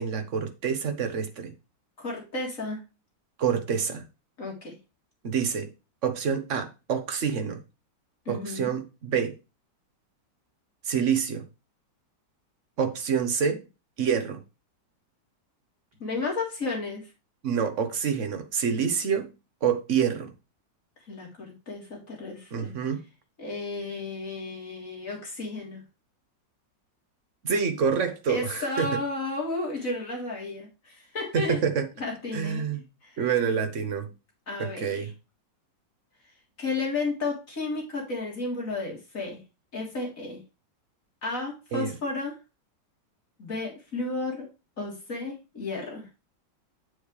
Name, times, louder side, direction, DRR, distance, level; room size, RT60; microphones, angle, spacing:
voice 1, 0.0-1.5 3.4-4.0 5.2-5.7 6.0-7.6 8.3-9.4 10.8-11.4 12.8-13.6 14.0-14.4 17.4-19.3 19.6-20.3 22.5-23.0 27.4-28.9 31.3-31.9 32.3-32.8 33.2-34.1 34.6-35.1 41.7-41.9, right 7 dB, 45° right, 1.4 m, -27 dB
voice 2, 2.0-2.8 4.4-4.8 8.3-8.7 16.0-17.1 21.1-22.7 23.4-25.8 28.3-31.6 32.0-32.6 33.0-33.2 34.5-35.1 36.6-39.4 39.7-40.4 41.2-42.4 43.4-44.5 44.8-46.1, left 3 dB, 45° left, 3.8 m, -33 dB
8.4 x 7.0 x 3.3 m
omnidirectional pair, 2.0 m